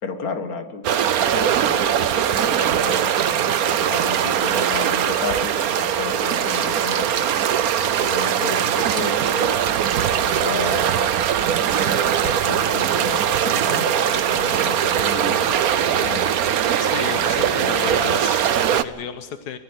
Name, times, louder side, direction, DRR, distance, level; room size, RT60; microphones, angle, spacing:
voice 1, 0.0-3.1 3.4-7.3 7.9-9.6 10.1-11.1 11.7-16.5 17.1-18.3, left 4 dB, 65° left, 8 dB, 2.1 m, -33 dB
sound 1, 0.8-18.8, right 9 dB, 70° right, 1.3 m, -21 dB
voice 2, 16.8-19.6, left 8 dB, 85° left, 9 dB, 1.5 m, -33 dB
25.0 x 17.5 x 6.4 m, 1.5 s
omnidirectional pair, 1.7 m